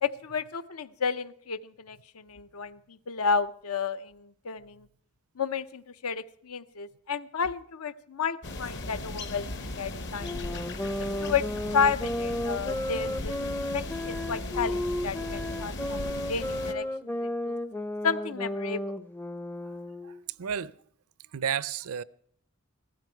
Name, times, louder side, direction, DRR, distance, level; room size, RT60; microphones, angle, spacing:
voice 1, 0.0-4.9 5.4-10.4 11.2-11.4 11.7-14.8 15.0-17.6 18.0-18.9, left 6 dB, 75° left, 0.7 m, -32 dB
sound 1, 8.4-16.7, left 2 dB, 55° left, 1.2 m, -37 dB
sound 2, 10.2-20.2, left 1 dB, 10° left, 0.5 m, -33 dB
voice 2, 20.0-20.7 21.3-22.0, right 8 dB, 70° right, 0.5 m, -32 dB
16.0 x 14.5 x 4.5 m
head